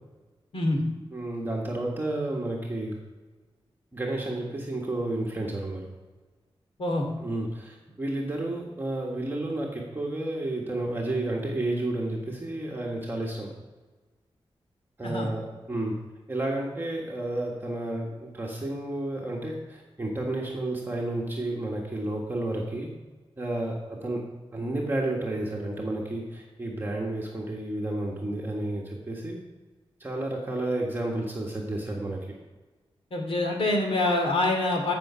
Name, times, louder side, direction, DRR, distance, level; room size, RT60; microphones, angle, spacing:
voice 1, 0.5-0.8 6.8-7.1 15.0-15.3 33.1-34.9, left 2 dB, 70° left, 2 dB, 2.5 m, -25 dB
voice 2, 1.1-3.0 3.9-5.9 7.2-13.5 15.0-16.0 16.3-22.9 23.4-24.2 24.5-29.4 30.0-32.4, right 1 dB, 20° right, -3 dB, 1.5 m, -31 dB
15.5 x 6.0 x 5.6 m, 1.3 s
wide cardioid pair, 155°, 10 cm